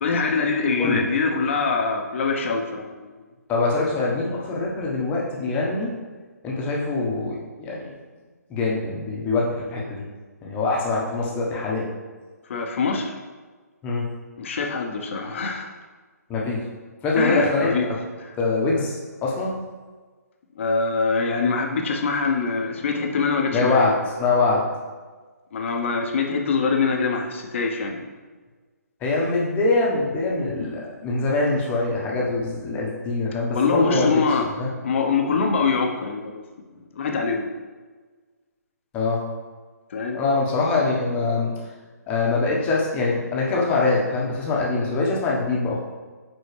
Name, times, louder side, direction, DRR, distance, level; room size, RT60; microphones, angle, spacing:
voice 1, 0.0-3.2 12.5-13.1 14.4-15.7 17.2-17.9 20.6-23.9 25.5-28.0 33.5-34.5 34.8-36.4 36.9-37.5 39.9-40.2, left 4 dB, 45° left, 2 dB, 1.0 m, -24 dB
voice 2, 3.5-5.9 6.4-7.9 8.5-10.0 10.4-11.9 13.8-14.0 16.3-16.6 17.0-18.0 18.4-19.6 23.5-24.6 29.0-34.7 38.9-39.2 40.1-41.5 42.1-45.8, left 3 dB, 15° left, -4 dB, 1.2 m, -23 dB
9.8 x 4.0 x 3.4 m, 1.4 s
figure-of-eight pair, 145°, 9 cm